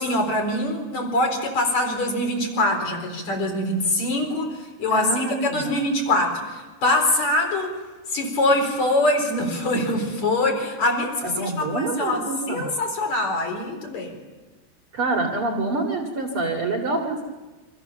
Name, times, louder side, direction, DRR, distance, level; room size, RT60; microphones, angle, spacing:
voice 1, 0.0-7.7 8.1-14.1, left 1 dB, 40° left, 3 dB, 5.6 m, -24 dB
voice 2, 4.9-5.8 11.2-12.7 14.9-17.2, right 3 dB, 40° right, 1 dB, 2.4 m, -26 dB
29.0 x 26.0 x 7.1 m, 1.3 s
omnidirectional pair, 5.5 m